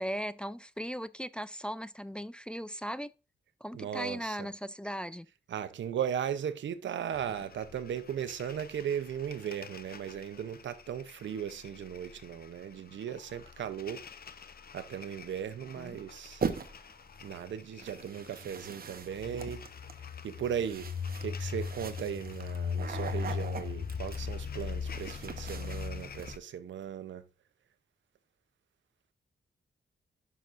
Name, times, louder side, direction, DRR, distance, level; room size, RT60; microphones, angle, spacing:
voice 1, 0.0-3.1 3.6-5.3 15.8-16.0, equal, 5° left, 0.4 m, -38 dB
voice 2, 3.7-4.5 5.5-14.0 14.7-16.4 17.2-19.6 20.2-20.9 21.2-27.2, right 9 dB, 90° right, 0.8 m, -37 dB
sound 1, 7.1-26.4, left 6 dB, 55° left, 0.7 m, -41 dB
sound 2, 16.4-17.0 17.8-26.4, right 6 dB, 55° right, 0.9 m, -41 dB
11.0 x 5.9 x 2.6 m
cardioid pair, 75°, 19 cm